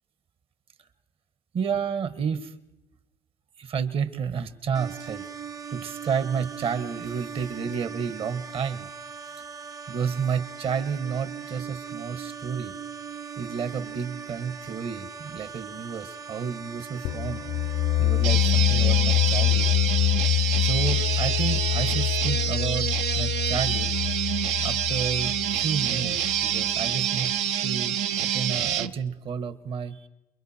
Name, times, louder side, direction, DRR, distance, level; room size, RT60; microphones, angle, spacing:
voice 1, 1.5-2.5 3.6-5.2 5.7-8.9 9.9-12.7 13.4-17.4 18.0-19.7 20.6-22.9 23.1-23.9 24.6-26.1 26.4-27.4 27.6-30.1, right 6 dB, 55° right, 12 dB, 1.5 m, -31 dB
sound 1, 4.7-18.3, right 6 dB, 30° right, 0.8 m, -39 dB
sound 2, 17.0-26.6, left 15 dB, 70° left, 0.7 m, -25 dB
sound 3, 18.2-28.9, right 9 dB, 75° right, 0.8 m, -27 dB
28.5 x 23.0 x 4.4 m, 0.91 s
supercardioid pair, 75°, 11 cm